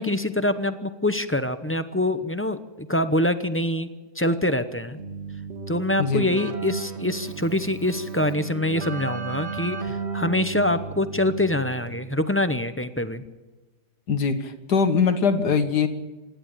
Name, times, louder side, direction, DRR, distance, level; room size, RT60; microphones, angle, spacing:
voice 1, 0.0-3.9 4.1-5.0 5.7-13.2, left 1 dB, 15° left, 10 dB, 0.5 m, -25 dB
Keyboard (musical), 5.0-12.3, right 5 dB, 45° right, 1.5 m, -34 dB
voice 2, 6.0-6.3 14.1-15.9, left 5 dB, 80° left, 8 dB, 2.1 m, -22 dB
27.0 x 11.5 x 9.0 m, 1.2 s
omnidirectional pair, 1.7 m